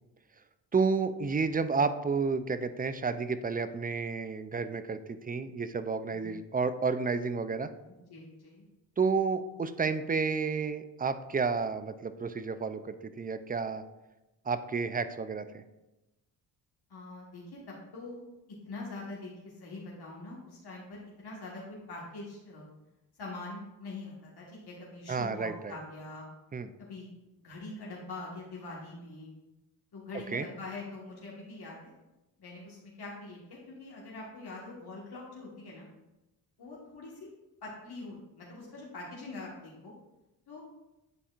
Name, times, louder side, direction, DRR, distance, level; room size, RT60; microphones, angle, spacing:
voice 1, 0.7-7.7 9.0-13.8 14.5-15.6 25.1-25.7 26.5-26.7 30.3-30.5, right 5 dB, 20° right, 12 dB, 0.4 m, -31 dB
voice 2, 7.9-8.7 16.9-18.2 18.6-22.7 23.2-26.2 26.8-27.1 27.4-29.3 29.9-31.9 32.4-35.9 36.6-37.3 37.6-39.9 40.5-40.6, left 2 dB, 55° left, -4 dB, 1.6 m, -44 dB
9.8 x 4.3 x 2.5 m, 0.99 s
supercardioid pair, 55°, 46 cm